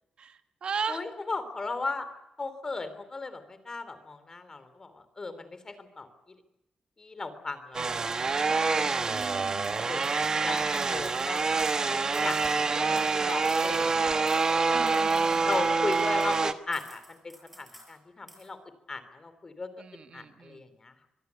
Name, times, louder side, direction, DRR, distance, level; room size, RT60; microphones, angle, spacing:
voice 1, 0.2-1.0 9.1-9.9 14.7-15.5 19.8-20.6, right 6 dB, 55° right, 8 dB, 1.8 m, -37 dB
voice 2, 0.9-2.1 2.4-6.1 7.0-7.9 8.7-9.3 9.9-10.1 10.4-11.4 11.9-15.1 15.4-18.6 18.9-19.7 20.1-21.1, left 3 dB, 30° left, 11 dB, 3.1 m, -37 dB
sound 1, 7.7-16.5, right 4 dB, 35° right, 1.2 m, -26 dB
sound 2, 9.2-9.4 9.6-11.8 12.1-14.0 14.3-14.6 14.9-16.4 16.7-18.0 18.3-18.5, equal, 5° right, 7.2 m, -53 dB
24.5 x 21.5 x 8.2 m, 0.87 s
wide cardioid pair, 165°, 2 cm